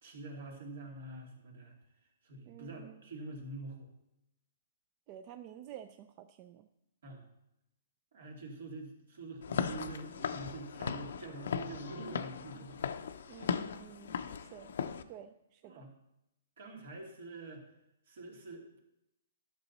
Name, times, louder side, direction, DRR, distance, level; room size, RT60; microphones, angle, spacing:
voice 1, 0.0-1.7 2.2-3.9 7.0-7.2 8.1-12.8 13.2-13.4 14.2-14.3 15.6-15.9 16.6-17.6 18.1-18.8, right 2 dB, 65° right, 1 dB, 2.6 m, -46 dB
voice 2, 2.5-3.0 5.1-6.7 13.3-14.7 15.1-15.8, right 11 dB, 30° right, 8 dB, 0.4 m, -51 dB
Walk footsteps / Siren, 9.4-15.0, left 7 dB, 70° left, 0.6 m, -38 dB
11.5 x 6.7 x 4.1 m, 0.86 s
hypercardioid pair, 155°, 0 cm